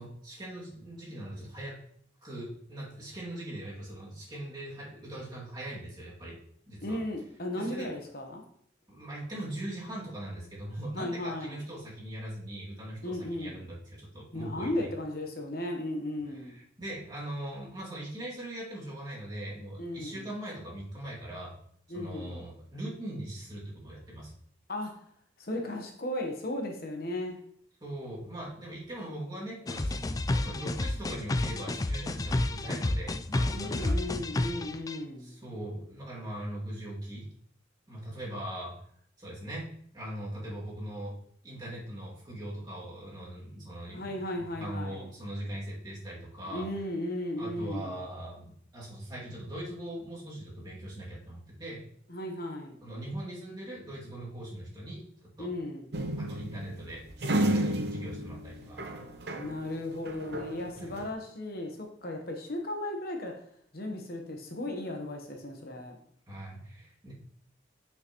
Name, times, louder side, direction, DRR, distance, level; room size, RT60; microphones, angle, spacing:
voice 1, 0.0-1.8 2.2-6.4 6.7-7.0 7.5-7.9 8.9-14.9 16.4-21.6 21.9-24.3 27.8-29.9 30.3-34.0 35.2-37.3 37.9-38.8 39.2-39.7 39.9-41.2 41.4-46.7 47.4-51.8 52.8-55.5 56.2-58.8 60.7-61.0 66.3-67.1, right 1 dB, 25° right, -6 dB, 2.5 m, -40 dB
voice 2, 6.8-8.4 10.9-11.6 13.0-13.6 14.3-16.5 19.8-20.3 21.9-22.4 24.7-24.9 25.4-27.4 33.5-35.4 43.9-45.0 46.5-48.0 52.1-52.8 55.4-55.9 59.3-63.3 63.7-66.0, left 1 dB, 55° left, 2 dB, 1.1 m, -36 dB
sound 1, 29.7-35.0, left 2 dB, 20° left, 0.3 m, -30 dB
sound 2, 55.9-59.7 60.0-61.1, right 1 dB, 60° right, 0.8 m, -32 dB
8.5 x 5.7 x 3.1 m, 0.64 s
head